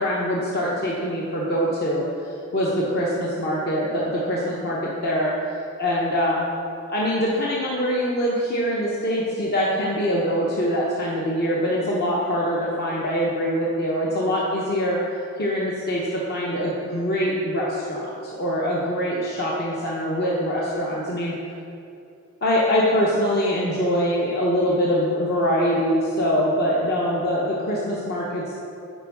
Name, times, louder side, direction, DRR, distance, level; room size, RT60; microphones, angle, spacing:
voice 1, 0.0-5.3 5.8-6.4 6.9-15.0 15.4-18.1 18.4-21.3 22.4-28.5, equal, 45° left, -5 dB, 0.9 m, -23 dB
9.0 x 5.2 x 4.7 m, 2.6 s
head